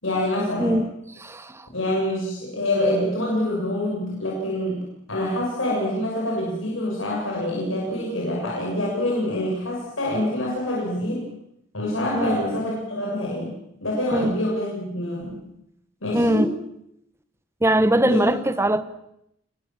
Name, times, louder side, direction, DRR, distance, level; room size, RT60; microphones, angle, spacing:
voice 1, 0.0-0.8 1.7-4.8 5.1-11.3 11.7-13.6 13.8-15.4 16.0-16.5 18.0-18.4, left 1 dB, 80° left, 6.6 m, -26 dB
voice 2, 0.6-0.9 1.2-1.7 12.1-12.3 14.1-14.4 16.1-16.5 17.6-18.8, right 1 dB, 15° right, 1.1 m, -21 dB
29.5 x 21.0 x 7.4 m
head